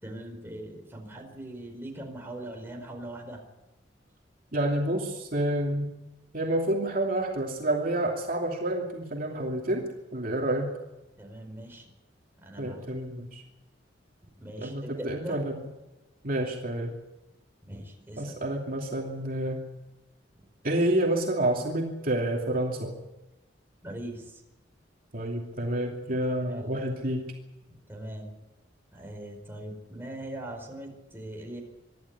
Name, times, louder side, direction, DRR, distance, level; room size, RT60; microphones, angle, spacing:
voice 1, 0.0-3.4 11.2-11.9 12.4-12.9 14.4-15.4 17.6-18.5 23.8-24.4 26.5-26.8 27.9-28.3 28.9-31.6, right 1 dB, 15° right, 1 dB, 4.7 m, -41 dB
voice 2, 4.5-5.9 6.3-9.8 10.1-10.7 12.6-13.4 14.6-15.6 16.2-17.0 18.2-19.6 20.6-22.9 25.1-27.3, right 1 dB, 50° right, 0 dB, 2.7 m, -29 dB
24.5 x 12.5 x 9.6 m, 1.0 s
head